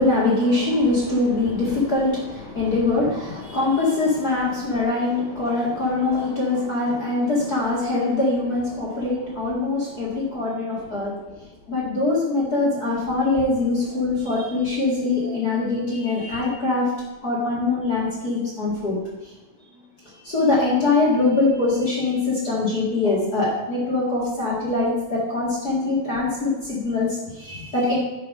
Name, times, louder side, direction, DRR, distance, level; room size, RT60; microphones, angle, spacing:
voice 1, 0.0-11.1 11.7-16.9 17.2-19.0 20.2-28.0, left 3 dB, 35° left, -6 dB, 1.7 m, -23 dB
10.5 x 5.1 x 5.4 m, 1.1 s
omnidirectional pair, 4.6 m